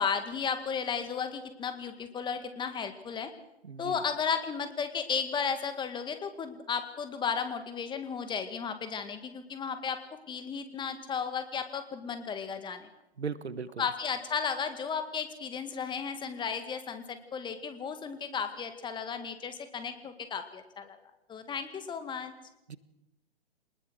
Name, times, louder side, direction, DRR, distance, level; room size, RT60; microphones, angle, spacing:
voice 1, 0.0-3.3 3.8-10.0 10.3-12.9 13.8-21.0 21.3-22.3, left 6 dB, 15° left, 9 dB, 2.0 m, -34 dB
voice 2, 3.6-4.0 13.2-13.9 22.7-22.8, right 5 dB, 85° right, 15 dB, 1.4 m, -37 dB
26.0 x 20.0 x 6.3 m, 0.90 s
figure-of-eight pair, 125°, 32 cm